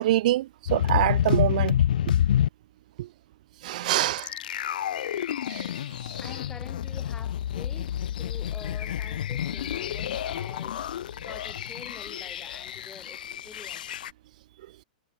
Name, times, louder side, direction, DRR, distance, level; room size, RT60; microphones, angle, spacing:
voice 1, 0.0-2.1 3.0-3.1 3.6-4.3 5.5-5.7, right 15 dB, 60° right, 0.3 m, -25 dB
sound 1, 0.7-2.5 4.2-14.1, left 10 dB, 75° left, 0.6 m, -29 dB
voice 2, 6.2-13.8, left 5 dB, 10° left, 2.3 m, -47 dB
hypercardioid pair, 130°, 5 cm